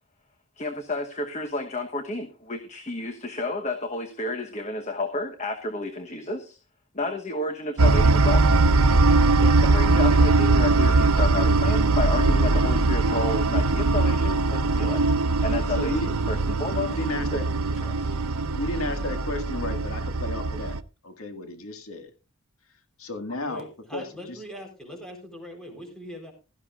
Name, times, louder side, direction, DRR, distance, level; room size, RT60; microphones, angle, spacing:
voice 1, 0.6-6.6 6.9-8.5 9.3-15.0 15.4-17.0 17.3-17.4 17.8-18.2, left 2 dB, 30° left, 6 dB, 1.1 m, -31 dB
sound 1, 7.8-20.8, right 3 dB, 80° right, 0.7 m, -21 dB
voice 2, 15.8-16.1 16.9-17.5 18.5-20.8 21.0-22.1 23.0-23.7 23.9-24.4, left 2 dB, 75° left, 6 dB, 1.9 m, -33 dB
voice 3, 23.5-26.3, equal, 5° left, 2 dB, 4.1 m, -41 dB
16.5 x 13.0 x 2.5 m, 0.30 s
head